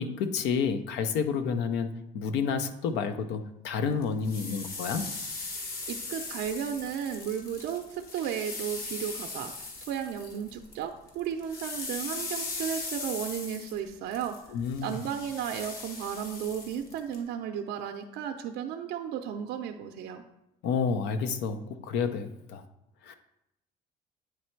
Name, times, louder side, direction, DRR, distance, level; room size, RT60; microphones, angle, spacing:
voice 1, 0.0-5.0 14.5-15.0 20.6-22.6 23.0-23.1, left 6 dB, 90° left, 9 dB, 0.6 m, -30 dB
sound 1, 4.0-10.8 11.1-17.2, left 3 dB, 60° left, 1.6 m, -39 dB
voice 2, 5.9-9.5 9.9-14.4 14.8-20.2, right 8 dB, 80° right, 5 dB, 0.5 m, -34 dB
8.9 x 3.2 x 4.5 m, 0.86 s
cardioid pair, 110°, 17 cm